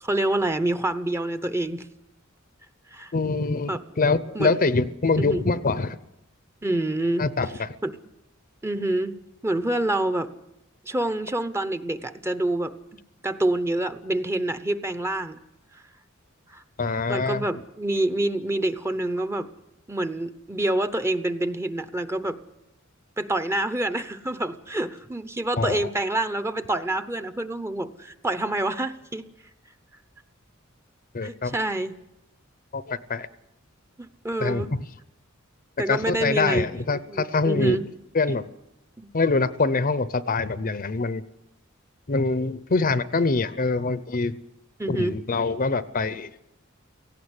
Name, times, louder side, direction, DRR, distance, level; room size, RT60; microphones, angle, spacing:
voice 1, 0.0-1.8 2.9-3.1 3.7-3.8 4.3-4.6 5.2-5.5 6.6-7.3 7.8-8.0 8.6-9.1 9.4-10.3 10.8-12.7 13.2-15.4 15.7-15.8 16.5-16.6 17.1-19.5 19.9-22.4 23.2-29.3 31.2-32.0 34.0-34.7 35.8-36.8 37.1-37.9 39.0-39.1 44.8-45.2, right 1 dB, 15° right, 11 dB, 0.8 m, -27 dB
voice 2, 3.1-6.0 7.2-7.7 16.8-17.4 25.6-25.9 31.1-31.6 32.7-33.3 34.4-34.8 35.9-37.8 38.1-38.4 39.1-41.2 42.1-44.3 44.9-46.3, left 3 dB, 40° left, 15 dB, 0.7 m, -24 dB
18.0 x 16.0 x 9.7 m, 0.87 s
head